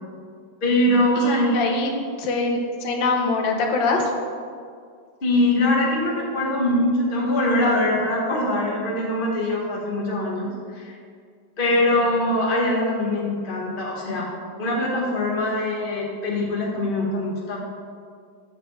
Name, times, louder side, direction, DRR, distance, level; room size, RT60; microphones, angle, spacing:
voice 1, 0.6-1.8 5.2-11.0 11.6-14.3 14.6-17.6, left 1 dB, 30° left, -2 dB, 1.4 m, -22 dB
voice 2, 1.2-1.9 2.2-4.1, left 3 dB, 80° left, 2 dB, 1.7 m, -23 dB
8.1 x 6.5 x 4.2 m, 2.2 s
omnidirectional pair, 2.0 m